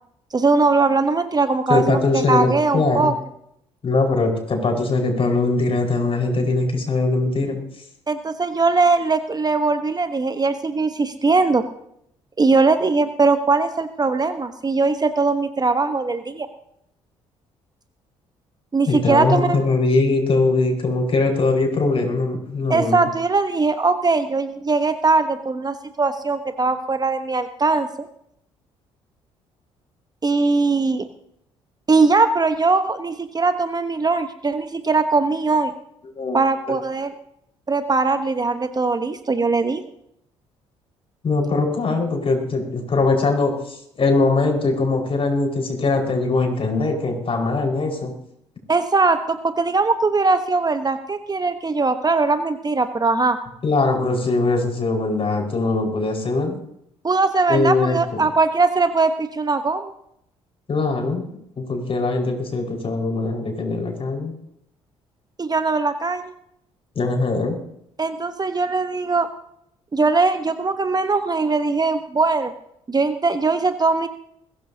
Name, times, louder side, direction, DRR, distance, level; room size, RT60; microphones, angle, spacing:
voice 1, 0.3-3.1 8.1-11.6 12.4-16.5 18.7-19.7 22.7-27.9 30.2-31.1 31.9-35.7 36.3-37.1 37.7-39.8 48.7-53.4 57.0-59.9 65.4-66.3 68.0-69.3 69.9-72.5 72.9-74.1, right 3 dB, 25° right, 9 dB, 1.1 m, -20 dB
voice 2, 1.7-3.1 3.8-7.6 18.9-23.1 36.2-36.4 41.2-48.1 53.6-56.6 57.5-58.2 60.7-61.3 61.6-64.3 67.0-67.6, left 3 dB, 40° left, 1 dB, 5.0 m, -21 dB
22.0 x 16.0 x 2.8 m, 0.74 s
figure-of-eight pair, 45°, 15 cm